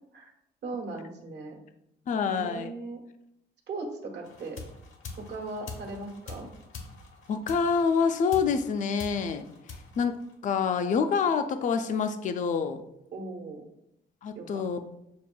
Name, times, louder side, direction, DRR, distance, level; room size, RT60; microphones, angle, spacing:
voice 1, 0.6-1.6 2.2-3.0 3.7-4.6 5.2-6.5 13.1-13.6 14.3-14.6, right 3 dB, 60° right, 0 dB, 1.1 m, -38 dB
voice 2, 2.1-2.7 7.3-9.4 10.0-12.8 14.2-14.8, left 6 dB, 40° left, 8 dB, 0.4 m, -27 dB
sound 1, 4.2-10.8, left 4 dB, 85° left, 0.9 m, -45 dB
6.9 x 2.5 x 2.2 m, 0.79 s
cardioid pair, 90°, 20 cm